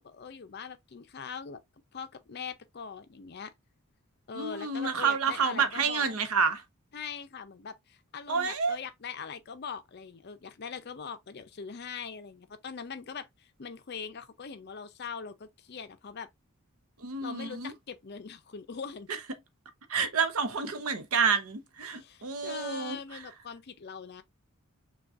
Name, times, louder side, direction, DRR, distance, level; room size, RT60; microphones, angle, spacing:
voice 1, 0.0-1.6 1.9-3.5 4.3-6.1 6.9-16.3 17.2-19.1 21.9-24.2, left 6 dB, 45° left, 0.5 m, -42 dB
voice 2, 4.3-6.6 8.3-8.8 17.0-17.7 19.1-19.2 19.9-23.2, right 5 dB, 75° right, 0.7 m, -29 dB
6.0 x 2.3 x 2.4 m
head